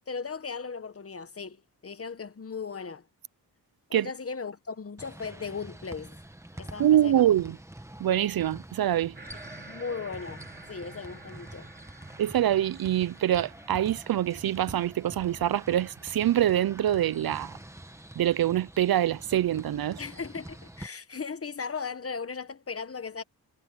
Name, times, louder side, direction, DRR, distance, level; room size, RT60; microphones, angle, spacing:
voice 1, 0.1-3.0 3.9-6.2 6.6-7.2 9.7-10.4 10.7-11.7 20.0-23.2, left 5 dB, 35° left, 1.1 m, -37 dB
sound 1, 5.0-20.9, right 1 dB, 5° right, 1.6 m, -46 dB
voice 2, 6.8-7.6 8.0-9.1 12.2-17.6 18.2-20.0, right 11 dB, 60° right, 0.5 m, -25 dB
sound 2, 9.2-18.1, right 2 dB, 25° right, 3.5 m, -52 dB
wide cardioid pair, 115°, 41 cm